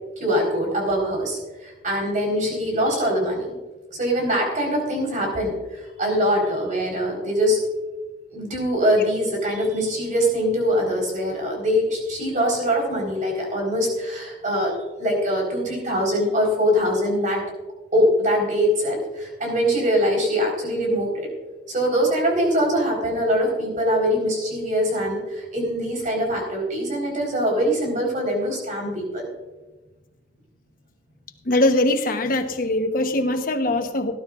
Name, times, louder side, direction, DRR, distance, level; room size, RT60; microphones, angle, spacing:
voice 1, 0.2-3.5 3.9-7.6 8.3-17.4 17.9-21.3 21.7-29.2, equal, 45° right, 0 dB, 4.3 m, -23 dB
voice 2, 31.5-34.1, left 1 dB, 55° left, 6 dB, 1.0 m, -21 dB
18.5 x 12.0 x 2.5 m, 1.2 s
head